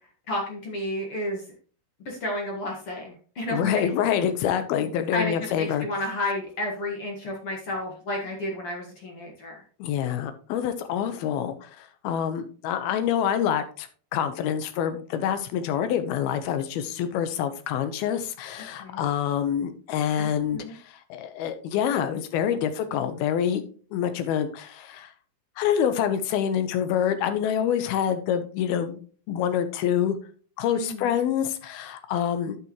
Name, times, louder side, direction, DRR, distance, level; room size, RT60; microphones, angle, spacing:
voice 1, 0.3-1.4 2.1-3.8 5.1-9.6 18.8-19.0 20.2-20.7 30.7-31.2, left 1 dB, 50° left, 0 dB, 1.9 m, -31 dB
voice 2, 3.5-5.9 9.8-23.6 23.9-25.1 25.6-29.0 29.3-30.2 30.6-32.6, left 9 dB, 80° left, 10 dB, 2.7 m, -26 dB
11.5 x 6.7 x 3.0 m, 0.41 s
omnidirectional pair, 4.6 m